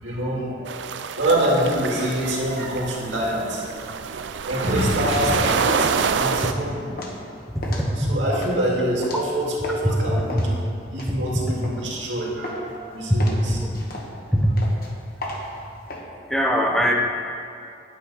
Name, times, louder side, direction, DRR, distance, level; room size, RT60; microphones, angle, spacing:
voice 1, 0.0-3.7 4.5-7.2 8.0-10.6 10.9-13.6, right 1 dB, 90° right, -4 dB, 2.2 m, -25 dB
sound 1, 0.7-6.5, right 6 dB, 70° right, 0.4 m, -27 dB
sound 2, 5.0-9.9 10.3-12.1 12.4-12.8 13.2-16.0, left 1 dB, 55° left, 1.3 m, -34 dB
voice 2, 7.5-7.9 9.8-9.9 13.1-13.2 14.3-14.4 16.3-16.9, equal, ahead, -1 dB, 0.8 m, -20 dB
9.3 x 8.6 x 4.1 m, 2.5 s
head